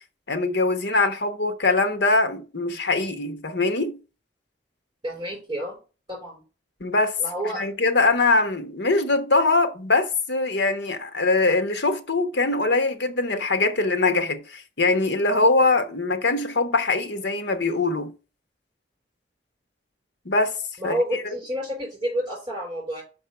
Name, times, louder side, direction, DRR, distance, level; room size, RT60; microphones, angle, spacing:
voice 1, 0.3-4.0 6.8-7.1 7.5-18.1 20.2-20.5 20.8-21.0, left 3 dB, 70° left, 1.1 m, -22 dB
voice 2, 5.0-5.8 6.1-6.4 7.2-7.6 20.8-23.0, equal, 25° right, 4.9 m, -29 dB
6.0 x 5.4 x 5.5 m
head